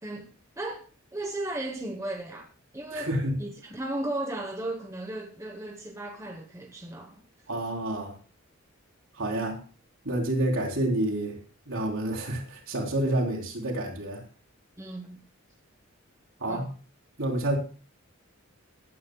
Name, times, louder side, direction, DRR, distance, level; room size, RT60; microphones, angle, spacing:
voice 1, 1.1-2.5 2.7-3.1 3.4-7.2 14.8-15.2 16.5-16.7, right 1 dB, 15° right, 1.0 m, -35 dB
voice 2, 2.9-3.4 7.5-8.1 9.2-9.6 10.1-11.4 11.7-14.2 16.4-16.7 17.2-17.6, right 1 dB, 65° right, 3.6 m, -28 dB
17.0 x 10.5 x 2.3 m
head